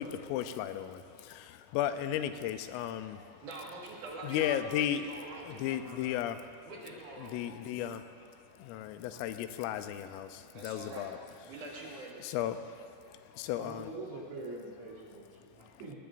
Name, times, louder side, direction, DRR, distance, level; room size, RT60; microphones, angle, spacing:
voice 1, 0.0-3.5 4.2-5.0 5.4-6.7 7.2-11.2 12.2-13.9 15.6-15.7, left 11 dB, 90° left, 10 dB, 3.2 m, -35 dB
voice 2, 3.4-6.1 6.6-7.5 10.5-11.1 11.4-12.2, right 2 dB, 55° right, -3 dB, 2.4 m, -45 dB
voice 3, 13.6-16.0, right 2 dB, 90° right, -7 dB, 5.6 m, -44 dB
20.0 x 18.5 x 2.6 m, 2.6 s
omnidirectional pair, 5.7 m